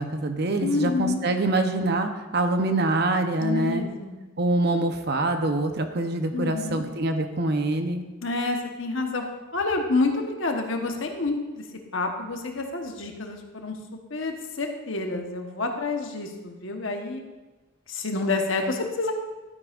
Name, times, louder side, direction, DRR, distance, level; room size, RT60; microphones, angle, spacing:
voice 1, 0.0-3.8 4.4-8.0, right 2 dB, 50° right, 6 dB, 0.8 m, -25 dB
voice 2, 0.6-1.2 3.4-4.2 6.3-6.8 8.2-9.2 9.5-11.6 11.9-13.8 14.1-17.2 17.9-19.1, left 3 dB, 65° left, 3 dB, 1.2 m, -28 dB
12.5 x 9.7 x 2.5 m, 1.2 s
head